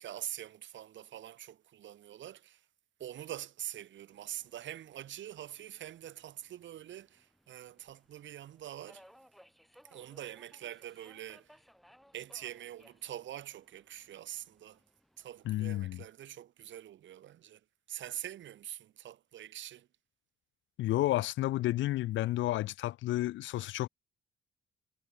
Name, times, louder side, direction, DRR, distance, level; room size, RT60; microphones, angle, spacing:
voice 1, 0.0-2.6 3.0-9.0 9.9-11.6 12.1-14.8 15.2-17.6 17.9-19.9, right 11 dB, 70° right, 2.3 m, -44 dB
Subway metro underground, 4.1-16.1, equal, ahead, 7.8 m, -64 dB
voice 2, 15.5-16.0 20.8-23.9, left 15 dB, 75° left, 0.4 m, -31 dB
cardioid pair, 90°, 20 cm